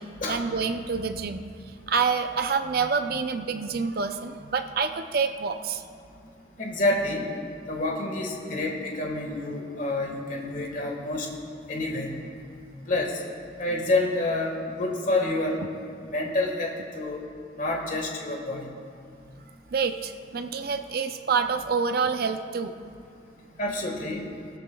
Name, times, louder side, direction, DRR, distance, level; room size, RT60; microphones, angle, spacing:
voice 1, 0.0-5.8 19.7-22.8, right 5 dB, 55° right, 8 dB, 0.5 m, -27 dB
voice 2, 6.6-7.2 7.7-11.3 11.7-12.2 12.9-13.2 13.6-15.6 16.0-17.2 17.6-18.7 23.6-24.3, left 2 dB, 45° left, 0 dB, 1.6 m, -28 dB
18.5 x 13.0 x 2.3 m, 2.4 s
head